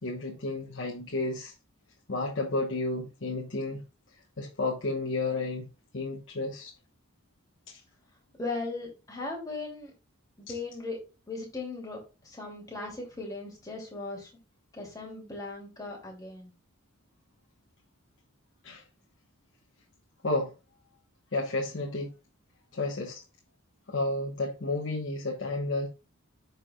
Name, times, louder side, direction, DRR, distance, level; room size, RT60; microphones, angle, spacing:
voice 1, 0.0-1.5 2.1-3.8 4.4-5.7 5.9-6.7 7.7-7.8 18.6-18.8 20.2-20.5 21.3-22.1 22.7-23.2 23.9-25.9, left 2 dB, 60° left, 1.2 m, -31 dB
voice 2, 8.4-9.9 10.4-11.0 11.3-14.3 14.7-16.5, left 3 dB, 15° left, 2.7 m, -38 dB
14.5 x 4.8 x 2.4 m
head